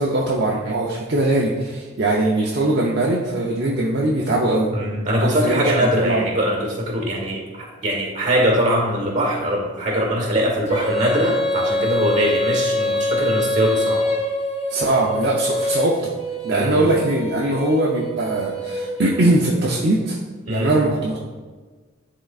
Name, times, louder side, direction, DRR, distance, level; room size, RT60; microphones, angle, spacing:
voice 1, 0.0-4.7 5.2-6.2 14.7-16.1 16.4-20.2 20.5-21.2, right 2 dB, 55° right, -3 dB, 0.7 m, -21 dB
voice 2, 4.7-14.0 16.5-16.8 20.4-20.8, equal, 40° right, -1 dB, 1.7 m, -22 dB
Female singing, 10.7-19.5, left 1 dB, 35° left, 0.8 m, -25 dB
11.0 x 3.8 x 2.4 m, 1.4 s
head